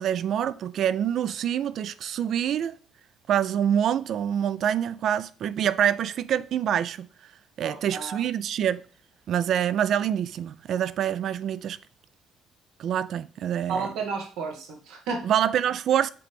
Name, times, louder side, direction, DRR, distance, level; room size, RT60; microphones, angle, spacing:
voice 1, 0.0-2.8 3.3-7.1 7.6-8.8 9.3-11.8 12.8-13.9 15.2-16.1, right 9 dB, 55° right, 0.4 m, -26 dB
voice 2, 7.6-8.2 13.7-15.3, right 4 dB, 85° right, 1.7 m, -32 dB
7.7 x 3.2 x 5.1 m
cardioid pair, 140°, 0 cm